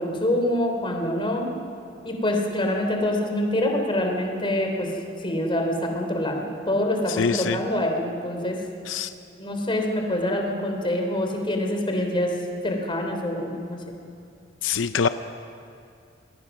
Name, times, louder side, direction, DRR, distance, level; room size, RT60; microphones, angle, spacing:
voice 1, 0.0-1.5 2.0-4.9 5.2-8.6 9.4-12.3 12.6-13.8, left 1 dB, 30° left, 2 dB, 3.5 m, -25 dB
voice 2, 7.1-7.6 8.9-9.1 14.6-15.1, left 6 dB, 90° left, 10 dB, 0.6 m, -24 dB
27.0 x 21.5 x 6.2 m, 2.5 s
head